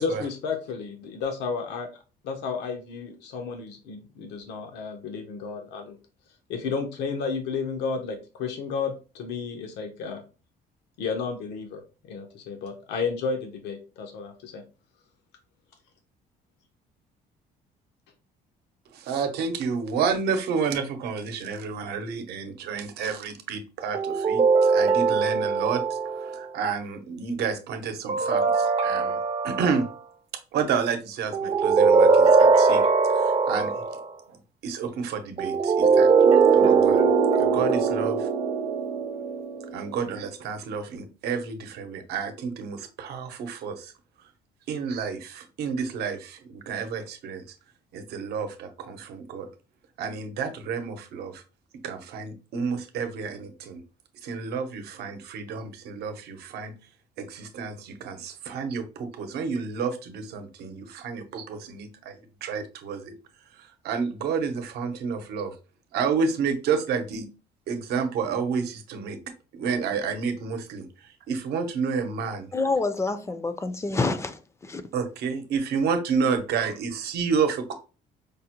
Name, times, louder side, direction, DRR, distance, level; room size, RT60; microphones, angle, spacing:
voice 1, 0.0-1.9 2.2-6.0 6.5-10.2 11.0-11.8 12.1-14.6, left 5 dB, 80° left, 0.8 m, -32 dB
voice 2, 18.9-29.2 29.4-29.8 30.5-32.8 33.1-33.8 34.3-36.1 36.5-37.1 37.4-38.3 39.7-43.9 44.7-47.4 47.9-49.5 50.0-51.4 51.8-53.8 54.2-56.7 57.2-63.1 63.6-65.5 65.9-67.3 67.7-69.2 69.5-72.5 74.9-77.7, right 5 dB, 75° right, 0.8 m, -30 dB
sound 1, 23.9-26.4 28.1-29.9 31.3-34.0 35.4-39.9, right 5 dB, 35° right, 0.6 m, -21 dB
voice 3, 72.5-74.8, left 3 dB, 15° left, 0.4 m, -27 dB
5.1 x 2.1 x 2.9 m
cardioid pair, 110°, 17 cm